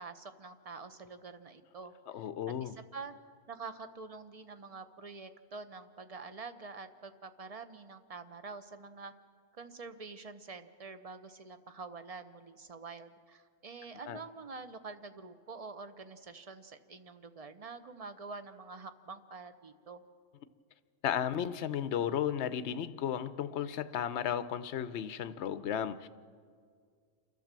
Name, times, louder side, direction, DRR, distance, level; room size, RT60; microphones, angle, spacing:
voice 1, 0.0-2.3 2.6-3.1 3.5-9.1 9.5-20.0, right 4 dB, 30° right, 10 dB, 0.7 m, -47 dB
voice 2, 2.1-2.8 14.1-14.2 21.0-26.1, left 9 dB, 55° left, 12 dB, 0.8 m, -34 dB
29.5 x 12.0 x 7.5 m, 2.1 s
omnidirectional pair, 1.6 m